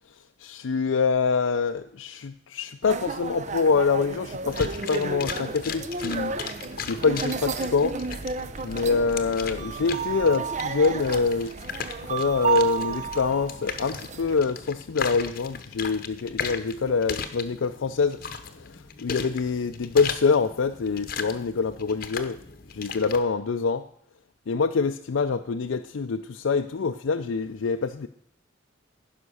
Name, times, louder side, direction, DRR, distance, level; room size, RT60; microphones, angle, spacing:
voice 1, 0.4-6.3 6.9-8.0 8.6-11.5 12.0-18.2 18.5-18.7 19.0-22.4 22.7-23.8 24.5-28.1, left 4 dB, 80° left, 7 dB, 0.5 m, -25 dB
sound 1, 2.8-14.4, right 5 dB, 35° right, 0.6 m, -32 dB
sound 2, 4.5-23.2, left 6 dB, 45° left, 0.9 m, -37 dB
15.0 x 5.8 x 6.3 m, 0.66 s
head